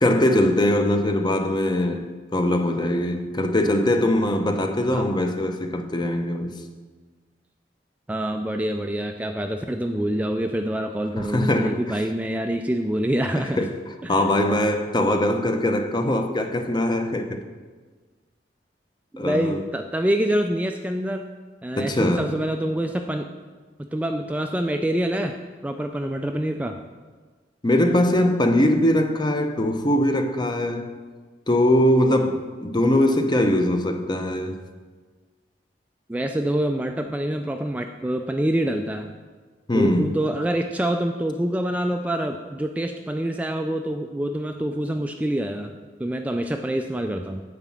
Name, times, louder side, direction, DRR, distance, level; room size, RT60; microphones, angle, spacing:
voice 1, 0.0-6.6 11.2-11.8 13.3-17.4 19.2-19.6 21.8-22.3 27.6-31.0 31.5-34.6 39.7-40.1, left 1 dB, 25° left, 0.7 m, -22 dB
voice 2, 8.1-13.6 14.0-14.2 19.1-21.2 21.6-23.3 23.8-25.4 25.6-26.8 36.1-39.2 39.7-45.7 46.0-47.4, right 1 dB, 10° right, 0.3 m, -26 dB
9.6 x 4.0 x 7.3 m
head